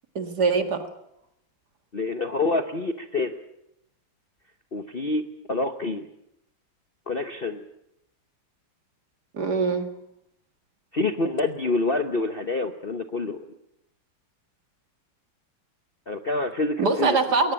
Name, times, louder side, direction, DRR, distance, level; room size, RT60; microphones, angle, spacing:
voice 1, 0.2-0.9 9.3-9.9 16.8-17.5, right 4 dB, 55° right, 7 dB, 2.3 m, -23 dB
voice 2, 1.9-3.3 4.7-6.1 7.1-7.6 10.9-13.4 16.1-17.2, left 3 dB, 35° left, 6 dB, 0.9 m, -27 dB
21.5 x 19.0 x 8.8 m, 0.81 s
omnidirectional pair, 2.2 m